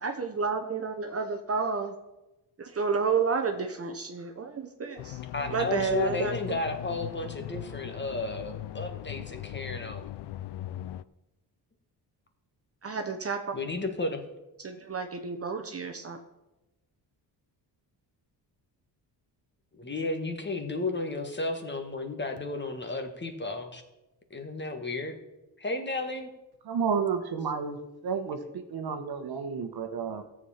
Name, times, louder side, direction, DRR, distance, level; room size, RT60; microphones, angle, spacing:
voice 1, 0.0-1.9 2.6-5.2 5.5-6.4 12.8-13.4 14.6-16.2, right 5 dB, 35° right, 5 dB, 1.0 m, -30 dB
sound 1, 5.0-11.0, left 14 dB, 70° left, 0.5 m, -39 dB
voice 2, 5.3-10.1 13.5-14.2 19.8-23.8 24.3-25.2 25.6-26.3, left 2 dB, 25° left, 6 dB, 1.6 m, -33 dB
voice 3, 26.7-30.3, right 6 dB, 60° right, 7 dB, 1.3 m, -31 dB
13.0 x 7.5 x 5.7 m, 1.0 s
cardioid pair, 95°, 43 cm